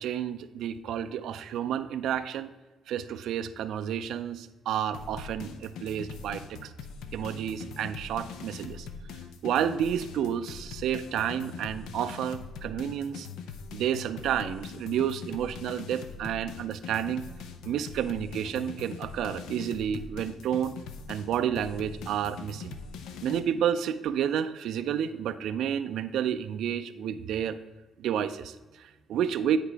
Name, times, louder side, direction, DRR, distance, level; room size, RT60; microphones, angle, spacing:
voice 1, 0.0-2.5 2.9-6.7 7.1-8.9 9.4-13.3 13.7-17.3 17.6-20.8 21.1-22.8 23.2-27.6 28.0-29.6, right 9 dB, 80° right, 11 dB, 0.3 m, -30 dB
sound 1, 4.9-23.4, left 5 dB, 90° left, 0.5 m, -42 dB
10.0 x 4.7 x 3.3 m, 1.1 s
cardioid pair, 90°, 0 cm